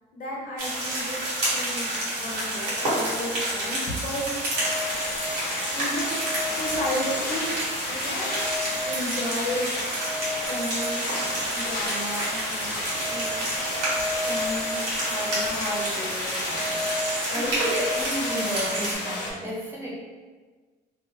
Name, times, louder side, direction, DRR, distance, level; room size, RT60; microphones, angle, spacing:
voice 1, 0.1-4.7 5.7-7.6 7.9-8.4 8.9-9.9 10.4-12.8 13.1-13.6 14.1-16.9 17.3-17.5, left 1 dB, 55° left, -4 dB, 0.8 m, -34 dB
sound 1, 0.6-18.9, right 1 dB, 75° right, 1.1 m, -30 dB
sound 2, 4.5-19.3, left 2 dB, 85° left, 0.5 m, -31 dB
voice 2, 17.3-19.9, equal, 15° right, -5 dB, 0.5 m, -31 dB
2.4 x 2.1 x 2.8 m, 1.4 s
cardioid pair, 110°, 17 cm